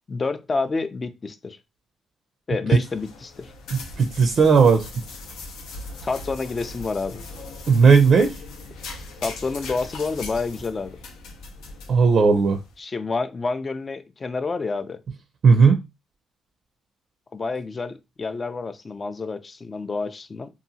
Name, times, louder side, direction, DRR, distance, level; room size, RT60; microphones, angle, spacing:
voice 1, 0.1-1.6 2.5-3.5 6.0-7.2 9.2-11.0 12.8-15.0 17.3-20.5, left 4 dB, 30° left, 0.3 m, -28 dB
sound 1, 2.7-12.7, left 3 dB, 85° left, 0.6 m, -39 dB
voice 2, 3.7-4.9 7.7-8.3 11.9-12.6 15.4-15.8, right 5 dB, 55° right, 0.4 m, -16 dB
2.7 x 2.4 x 2.6 m
cardioid pair, 90°, 0 cm